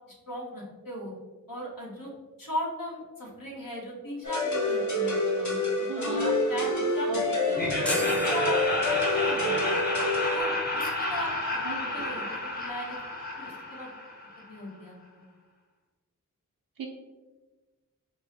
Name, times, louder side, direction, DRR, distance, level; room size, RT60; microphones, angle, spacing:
voice 1, 0.3-1.1 1.5-2.1 2.4-9.8 10.3-13.0 13.4-13.9 14.5-15.2, left 1 dB, 80° left, -3 dB, 1.2 m, -38 dB
sound 1, 4.2-10.4, left 2 dB, 60° left, 0.8 m, -27 dB
voice 2, 5.9-6.2 6.5-6.7 7.1-7.7 11.6-12.2 16.8-16.9, right 5 dB, 75° right, 0 dB, 0.5 m, -38 dB
Laughter, 7.5-14.5, left 1 dB, 30° left, 0.9 m, -31 dB
sound 2, 7.9-9.4, equal, 5° left, 0.4 m, -36 dB
4.4 x 2.0 x 4.2 m, 1.2 s
wide cardioid pair, 90°, 34 cm